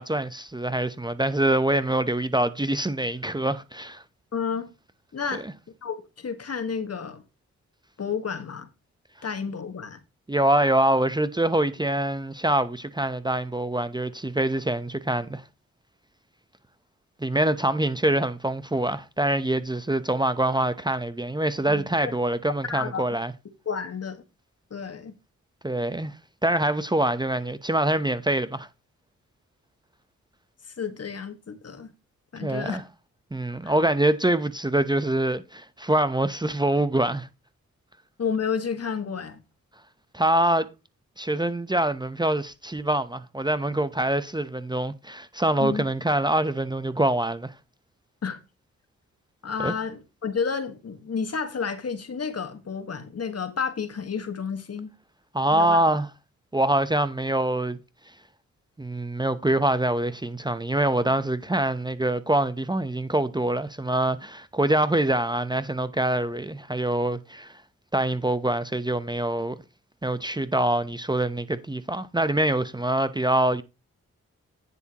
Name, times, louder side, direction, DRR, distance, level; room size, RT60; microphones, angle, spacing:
voice 1, 0.0-4.0 5.3-5.5 10.3-15.4 17.2-23.3 25.6-26.1 26.4-28.7 32.4-32.8 33.3-37.3 40.1-40.7 41.2-47.5 49.6-49.7 55.3-56.1 56.5-57.8 58.8-67.6 67.9-69.6 70.0-73.6, right 1 dB, 15° right, 0.9 m, -25 dB
voice 2, 4.3-4.7 5.1-5.5 5.8-7.2 8.0-8.7 9.2-10.0 21.6-22.1 22.7-23.1 23.6-24.2 24.7-25.1 30.8-31.9 32.3-32.8 33.6-33.7 38.2-39.4 45.6-45.9 48.2-48.4 49.4-54.9 55.5-55.8, left 6 dB, 50° left, 1.7 m, -31 dB
9.8 x 8.0 x 3.0 m
supercardioid pair, 50°, 31 cm